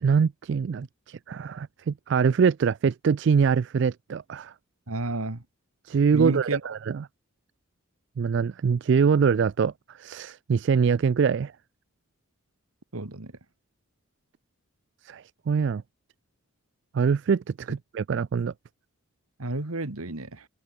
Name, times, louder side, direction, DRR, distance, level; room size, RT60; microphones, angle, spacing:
voice 1, 0.0-4.5 5.8-7.0 8.2-9.7 10.0-11.5 15.0-15.8 16.9-18.5, right 6 dB, 55° right, 0.3 m, -24 dB
voice 2, 4.9-5.4 6.1-6.7 12.9-13.3 19.4-20.5, right 2 dB, 80° right, 2.0 m, -31 dB
head